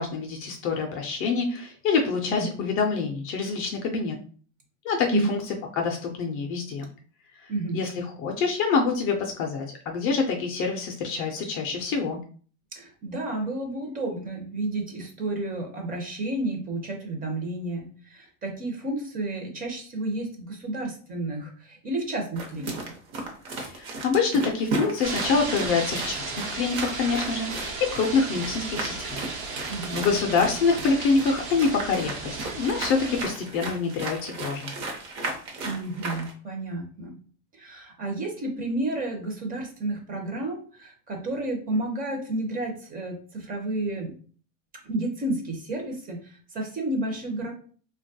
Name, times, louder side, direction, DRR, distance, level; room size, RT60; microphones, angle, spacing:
voice 1, 0.0-4.2 4.8-6.8 7.4-12.2 23.6-29.2 29.6-34.7, left 4 dB, 35° left, 2 dB, 0.4 m, -26 dB
voice 2, 2.3-2.6 5.1-5.4 7.5-7.8 12.7-22.8 29.7-30.0 35.6-37.2 37.5-44.1 44.8-47.5, right 2 dB, 25° right, 2 dB, 0.6 m, -31 dB
sound 1, 22.4-36.3, right 2 dB, 50° right, 0.8 m, -35 dB
sound 2, 25.0-33.2, right 4 dB, 75° right, 1.0 m, -35 dB
3.0 x 2.2 x 2.6 m, 0.43 s
supercardioid pair, 140°, 37 cm